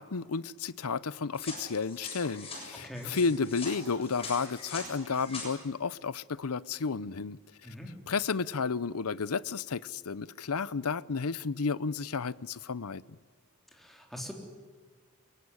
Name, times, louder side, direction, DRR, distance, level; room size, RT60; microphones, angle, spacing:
voice 1, 0.0-7.4 7.7-7.8 8.1-13.0, left 5 dB, 75° left, 0.7 m, -32 dB
sound 1, 1.3-5.5, left 3 dB, 25° left, 7.5 m, -43 dB
voice 2, 2.7-3.1 7.6-7.9 13.7-14.3, equal, ahead, 3.7 m, -42 dB
23.5 x 23.0 x 9.8 m
head